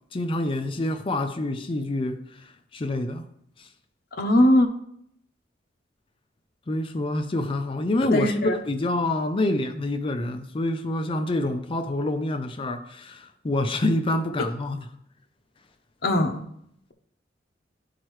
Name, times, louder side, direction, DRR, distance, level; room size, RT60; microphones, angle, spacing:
voice 1, 0.1-2.2 2.7-3.2 6.7-8.4 8.7-14.9, left 1 dB, 30° left, 0.4 m, -27 dB
voice 2, 4.2-4.7 8.0-8.5 16.0-16.4, left 1 dB, 55° left, 0.8 m, -20 dB
11.5 x 4.4 x 3.2 m
head